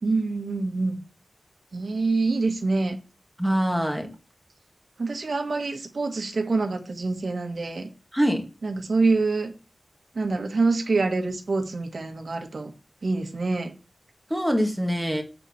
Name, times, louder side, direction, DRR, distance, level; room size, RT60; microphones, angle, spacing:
voice 1, 0.0-1.0 1.7-3.0 5.0-7.9 8.6-9.5 10.1-12.7 13.0-13.7, right 3 dB, 70° right, 1.4 m, -26 dB
voice 2, 3.4-4.1 8.1-8.4 14.3-15.2, equal, ahead, 2.0 m, -24 dB
7.6 x 4.2 x 6.4 m
wide cardioid pair, 85°, 0 cm